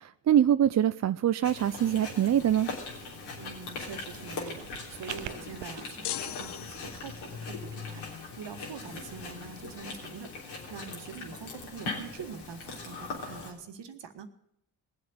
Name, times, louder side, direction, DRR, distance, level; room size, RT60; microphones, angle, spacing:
voice 1, 0.0-2.7, right 10 dB, 35° right, 12 dB, 0.5 m, -24 dB
Chewing mastication, 1.4-13.5, left 4 dB, 75° left, 3.5 m, -40 dB
voice 2, 3.4-14.3, right 6 dB, 60° right, 7 dB, 1.8 m, -44 dB
sound 1, 3.9-5.8, right 18 dB, 80° right, 0.6 m, -44 dB
sound 2, 6.0-7.4, left 12 dB, 55° left, 0.7 m, -38 dB
19.0 x 7.8 x 7.9 m, 0.75 s
hypercardioid pair, 45°, 48 cm